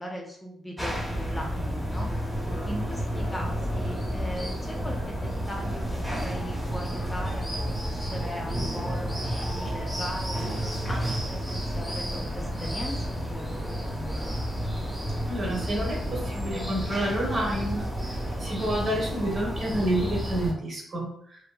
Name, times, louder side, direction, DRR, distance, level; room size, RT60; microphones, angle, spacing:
voice 1, 0.0-10.4 10.9-13.6, equal, 15° left, -1 dB, 0.5 m, -39 dB
sound 1, 0.8-20.5, equal, 10° right, 0.9 m, -31 dB
voice 2, 15.3-21.4, right 1 dB, 50° right, -2 dB, 1.1 m, -29 dB
2.6 x 2.6 x 2.2 m, 0.67 s
cardioid pair, 105°, 0 cm